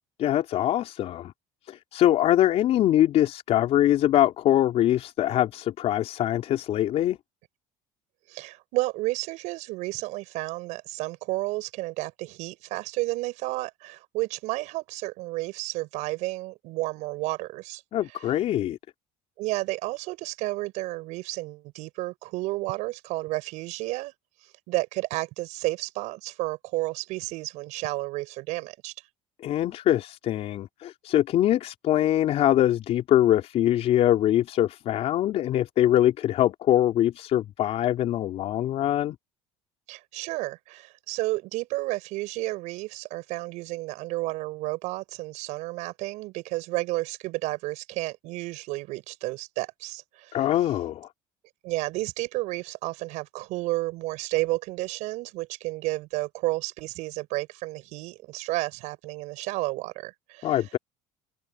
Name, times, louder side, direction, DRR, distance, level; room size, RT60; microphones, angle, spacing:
voice 1, 0.2-1.3 1.7-7.2 17.9-18.8 29.4-39.2 50.3-51.1 60.4-60.8, left 12 dB, 55° left, 4.4 m, -23 dB
voice 2, 8.3-17.8 18.2-18.3 19.4-24.1 24.7-28.9 39.9-50.4 51.6-60.6, right 20 dB, 75° right, 5.9 m, -31 dB
cardioid pair, 110°, 13 cm